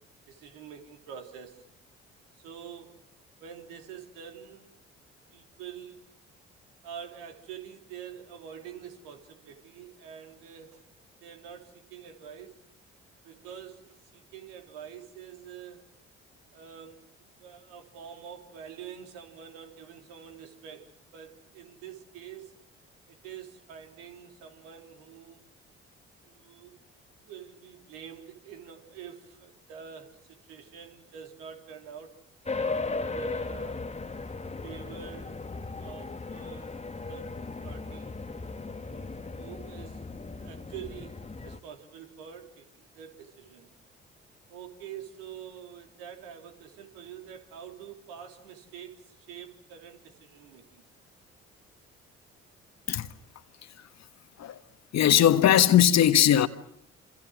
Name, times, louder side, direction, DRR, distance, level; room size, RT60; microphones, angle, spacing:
voice 1, 0.3-1.6 2.4-3.0 3.4-4.7 5.3-6.1 6.8-10.9 11.2-12.6 13.2-15.8 16.5-22.5 23.1-25.4 26.2-26.7 27.2-32.2 32.8-33.9 34.6-35.5 35.8-36.8 37.1-38.2 38.8-40.0 40.4-43.7 44.5-50.8, right 8 dB, 75° right, 3.4 m, -46 dB
sound 1, 32.5-41.6, left 3 dB, 20° left, 1.5 m, -36 dB
voice 2, 54.9-56.5, left 10 dB, 55° left, 1.5 m, -19 dB
28.0 x 27.5 x 6.4 m
figure-of-eight pair, 45°, 33 cm